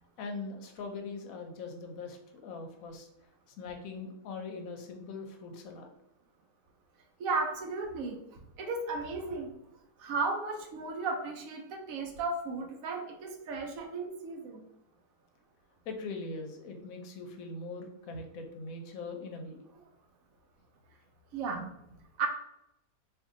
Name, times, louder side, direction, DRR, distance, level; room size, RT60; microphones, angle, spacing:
voice 1, 0.2-3.1 3.5-5.9 15.9-19.6, left 3 dB, 70° left, 4 dB, 0.9 m, -41 dB
voice 2, 7.2-8.2 8.6-9.5 10.0-14.6 21.3-21.7 22.2-22.3, right 3 dB, 70° right, 3 dB, 0.9 m, -34 dB
2.6 x 2.6 x 3.6 m, 0.81 s
omnidirectional pair, 1.7 m